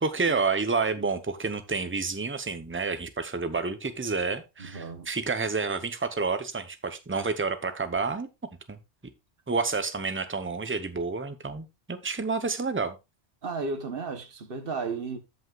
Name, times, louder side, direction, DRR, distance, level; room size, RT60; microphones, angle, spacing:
voice 1, 0.0-8.3 8.7-8.8 9.5-13.0, right 4 dB, 15° right, 0.7 m, -29 dB
voice 2, 4.6-5.1 13.4-15.2, right 4 dB, 55° right, 1.3 m, -34 dB
13.5 x 5.5 x 2.4 m
omnidirectional pair, 1.1 m